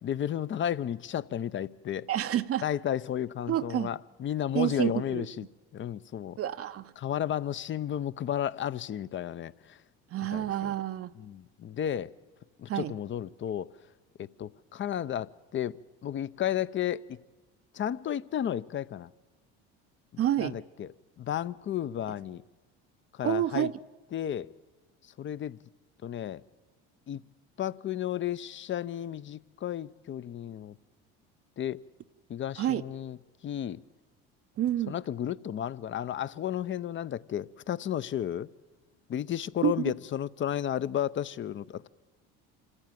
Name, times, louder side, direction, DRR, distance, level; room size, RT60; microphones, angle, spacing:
voice 1, 0.0-2.1 2.6-5.5 5.7-6.4 7.0-9.8 10.3-10.7 11.2-12.1 12.6-13.7 14.2-17.2 17.7-19.1 20.1-20.9 21.2-22.4 23.1-23.7 24.1-24.5 25.0-25.6 26.0-26.4 27.1-27.2 27.6-30.8 31.6-31.8 32.3-33.2 33.4-33.8 34.9-38.5 39.1-41.9, left 10 dB, 35° left, 0.7 m, -33 dB
voice 2, 2.1-2.6 3.5-3.9 4.5-5.3 6.4-6.9 10.1-11.1 12.7-12.9 20.2-20.6 23.2-23.7 32.6-32.8 34.6-35.0 39.6-39.7, right 11 dB, 45° right, 0.7 m, -28 dB
26.5 x 14.5 x 9.1 m
supercardioid pair, 90°, 32 cm